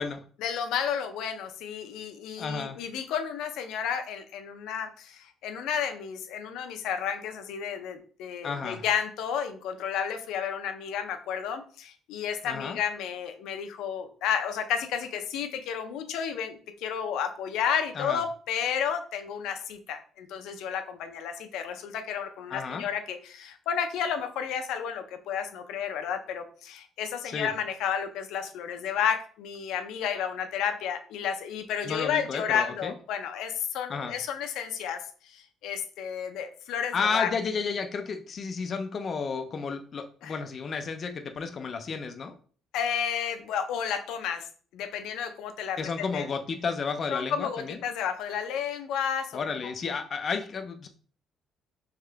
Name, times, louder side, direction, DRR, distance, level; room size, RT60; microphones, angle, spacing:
voice 1, 0.4-37.3 40.2-40.3 42.7-44.5 44.7-45.8 46.1-46.2 47.1-49.5, left 8 dB, 80° left, 7 dB, 0.6 m, -32 dB
voice 2, 2.4-2.8 8.4-8.9 12.4-12.8 18.0-18.2 22.5-22.9 27.3-27.5 31.8-32.9 33.9-34.2 36.9-42.3 45.8-47.8 49.3-50.9, left 5 dB, 35° left, 6 dB, 0.3 m, -32 dB
3.6 x 3.6 x 3.3 m, 0.43 s
cardioid pair, 165°, 0 cm